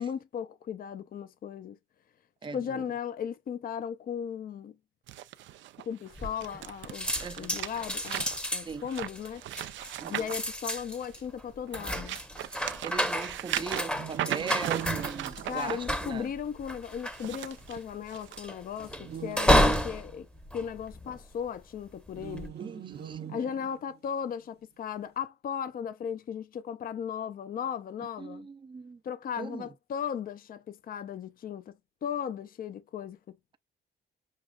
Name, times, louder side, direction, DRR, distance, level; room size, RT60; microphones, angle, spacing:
voice 1, 0.0-1.8 2.5-4.7 5.8-9.4 10.1-12.2 15.4-20.3 20.5-22.5 23.3-28.5 29.0-33.6, left 8 dB, 45° left, 0.5 m, -36 dB
voice 2, 2.4-2.9 7.2-7.5 8.6-8.8 10.0-10.3 12.8-16.3 22.6-23.5 28.2-29.0 29.4-29.7, right 5 dB, 25° right, 0.5 m, -39 dB
sound 1, 5.1-11.2 11.7-15.7 17.0-18.4 18.8-19.1 19.7-19.8, right 13 dB, 75° right, 0.5 m, -38 dB
sound 2, 6.2-6.7 6.9-21.5 22.1-22.5, equal, 5° left, 0.8 m, -31 dB
sound 3, 13.9-16.2 19.0-20.3 22.1-24.0, right 9 dB, 55° right, 0.9 m, -41 dB
6.4 x 2.3 x 2.2 m
cardioid pair, 90°, 20 cm